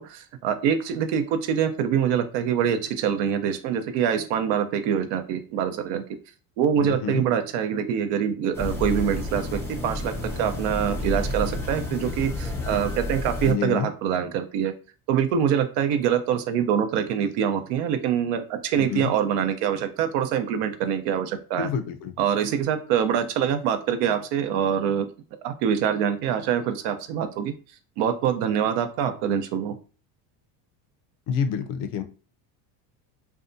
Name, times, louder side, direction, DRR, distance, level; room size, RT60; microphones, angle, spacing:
voice 1, 0.0-6.0 6.6-14.7 15.1-21.7 22.2-25.1 25.4-27.5 28.0-29.8, right 8 dB, 70° right, 8 dB, 0.6 m, -25 dB
voice 2, 6.8-7.2 13.4-13.9 18.8-19.1 21.6-22.1 31.3-32.0, left 7 dB, 60° left, 9 dB, 0.6 m, -28 dB
sound 1, 8.5-13.5, left 1 dB, 5° left, 0.5 m, -30 dB
2.7 x 2.2 x 2.5 m, 0.37 s
supercardioid pair, 115°, 46 cm